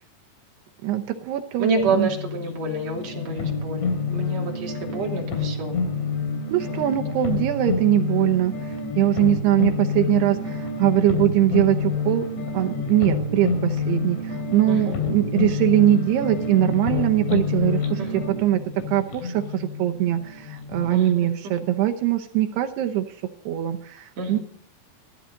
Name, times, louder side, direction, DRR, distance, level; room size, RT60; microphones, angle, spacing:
voice 1, 0.8-2.1 6.5-12.3 12.5-23.1 23.5-24.4, right 13 dB, 75° right, 5 dB, 2.7 m, -22 dB
voice 2, 1.6-5.8 6.6-6.9 14.7-15.0 18.0-18.2 20.9-21.6 24.2-24.4, right 2 dB, 40° right, 0 dB, 3.4 m, -29 dB
sound 1, 1.8-20.9, left 4 dB, 80° left, 5.3 m, -28 dB
15.0 x 14.0 x 4.0 m, 0.64 s
omnidirectional pair, 5.4 m